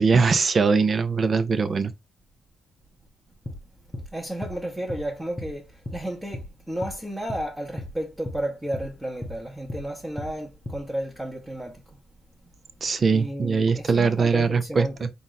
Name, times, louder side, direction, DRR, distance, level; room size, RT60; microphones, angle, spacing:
voice 1, 0.0-1.9 12.8-15.1, right 5 dB, 40° right, 0.6 m, -21 dB
sound 1, 3.4-3.6 3.9-4.1 4.4-4.6 4.9-5.1 5.4-5.5 5.9-6.0 6.3-6.5 6.8-7.0 7.3-7.5 7.8-7.9 8.2-8.4 8.7-8.9 9.2-9.4 9.7-9.9 10.2-10.3 10.7-10.8, left 1 dB, 20° left, 0.8 m, -35 dB
voice 2, 4.1-6.4 6.7-11.8 13.1-15.1, right 1 dB, 10° right, 1.0 m, -32 dB
4.0 x 2.5 x 3.9 m
cardioid pair, 90°, 0 cm